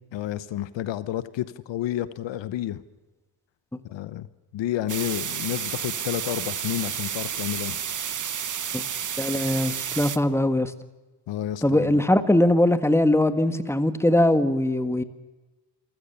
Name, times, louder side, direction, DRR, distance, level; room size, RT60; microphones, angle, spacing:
voice 1, 0.1-2.8 3.8-4.3 4.5-7.8 11.3-12.0, left 12 dB, 85° left, 16 dB, 1.0 m, -30 dB
sound 1, 4.9-10.2, right 8 dB, 45° right, 1.1 m, -31 dB
voice 2, 9.2-10.7 11.6-15.0, left 1 dB, 5° left, 11 dB, 1.7 m, -21 dB
27.0 x 15.5 x 7.1 m, 1.2 s
cardioid pair, 70°, 43 cm